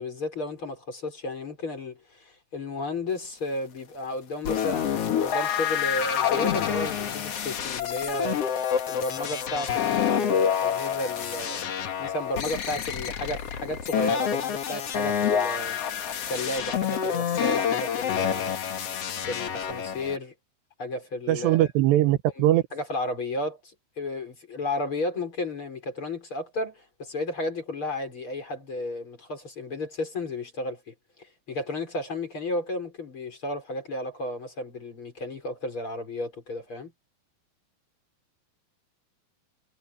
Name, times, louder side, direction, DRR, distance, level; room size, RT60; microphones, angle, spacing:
voice 1, 0.0-11.7 12.0-15.8 16.3-18.6 19.3-20.3 20.8-21.7 22.4-22.5 22.7-23.6 24.0-30.9 31.5-36.9, left 1 dB, 30° left, 5.6 m, -33 dB
sound 1, 4.5-20.2, left 8 dB, 60° left, 1.6 m, -27 dB
voice 2, 21.3-22.6, right 14 dB, 75° right, 3.0 m, -21 dB
omnidirectional pair, 5.1 m